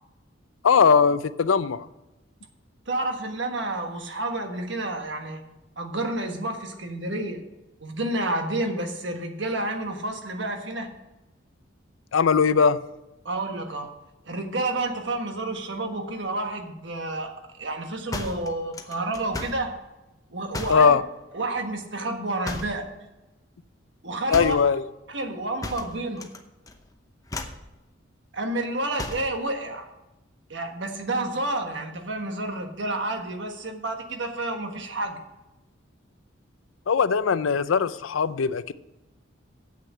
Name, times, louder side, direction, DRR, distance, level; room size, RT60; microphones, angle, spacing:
voice 1, 0.6-1.9 12.1-12.8 20.7-21.0 24.3-24.8 36.9-38.7, left 6 dB, 85° left, 15 dB, 0.5 m, -20 dB
voice 2, 2.9-5.4 5.8-7.4 7.8-10.9 13.2-13.9 14.3-19.8 20.3-20.9 21.3-22.9 24.0-24.6 25.1-26.2 28.3-29.9 30.5-35.2, right 2 dB, 65° right, 5 dB, 1.4 m, -30 dB
sound 1, 18.1-19.7 20.5-20.9 22.4-22.9 24.3-24.7 25.6-26.4 26.7-26.9 27.3-27.7 29.0-29.4, left 2 dB, 20° left, 0.8 m, -34 dB
8.0 x 6.6 x 8.3 m, 0.99 s
head